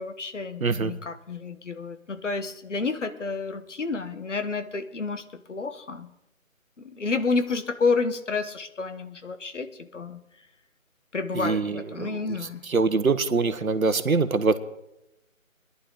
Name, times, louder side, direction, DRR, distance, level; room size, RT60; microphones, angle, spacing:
voice 1, 0.0-6.1 6.8-10.2 11.1-12.6, left 4 dB, 60° left, 10 dB, 1.4 m, -30 dB
voice 2, 0.6-0.9 11.3-12.4 12.6-14.6, right 4 dB, 80° right, 12 dB, 1.3 m, -24 dB
21.0 x 11.0 x 3.9 m, 0.88 s
figure-of-eight pair, 165°, 41 cm